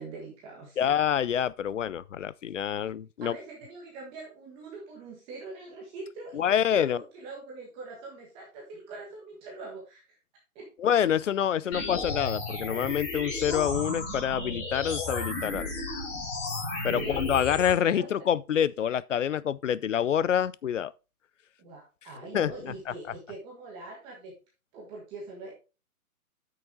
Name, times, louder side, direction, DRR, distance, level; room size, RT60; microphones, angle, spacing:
voice 1, 0.0-0.8 2.7-2.9 3.2-10.2 10.5-10.7 11.6-11.8 16.9-17.3 18.0-18.1 21.6-24.3 24.7-25.5, right 3 dB, 10° right, 1.5 m, -43 dB
voice 2, 0.8-3.4 6.3-7.0 10.8-15.7 16.8-20.9 22.3-22.7, left 9 dB, 55° left, 0.5 m, -27 dB
sound 1, 11.7-17.7, left 2 dB, 20° left, 2.3 m, -33 dB
8.7 x 6.5 x 3.7 m
hypercardioid pair, 165°, 45 cm